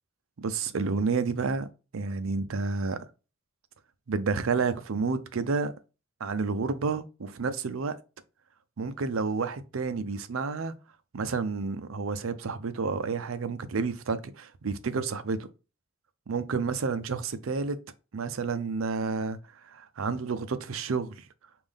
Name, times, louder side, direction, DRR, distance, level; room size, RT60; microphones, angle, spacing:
voice 1, 0.4-1.7 1.9-3.0 4.1-5.7 6.2-8.0 8.8-10.7 11.1-15.4 16.3-17.8 18.1-19.4 19.6-21.2, right 4 dB, 85° right, 0.5 m, -30 dB
5.3 x 2.5 x 3.6 m
head